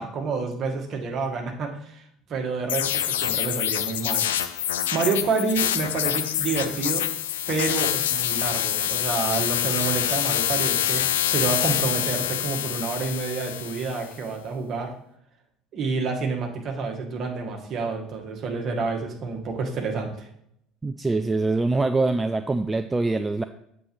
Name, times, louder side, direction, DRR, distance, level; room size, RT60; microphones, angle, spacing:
voice 1, 0.0-2.0 2.3-4.3 4.9-7.1 7.5-11.0 11.3-14.9 15.7-20.3, right 4 dB, 45° right, 2 dB, 1.4 m, -28 dB
sound 1, 2.7-14.1, left 11 dB, 75° left, 0.4 m, -26 dB
voice 2, 20.8-23.4, right 3 dB, 15° right, 9 dB, 0.4 m, -24 dB
7.9 x 6.3 x 3.1 m, 0.73 s
figure-of-eight pair, 65°, 0 cm